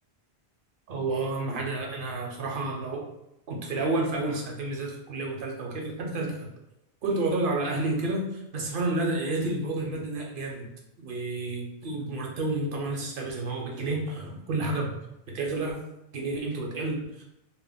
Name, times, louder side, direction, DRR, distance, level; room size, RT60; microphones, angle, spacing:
voice 1, 0.9-3.1 3.5-6.5 7.0-10.7 11.0-15.0 15.3-15.9 16.1-17.2, right 2 dB, 60° right, 0 dB, 0.7 m, -30 dB
2.2 x 2.0 x 3.5 m, 0.87 s
omnidirectional pair, 1.1 m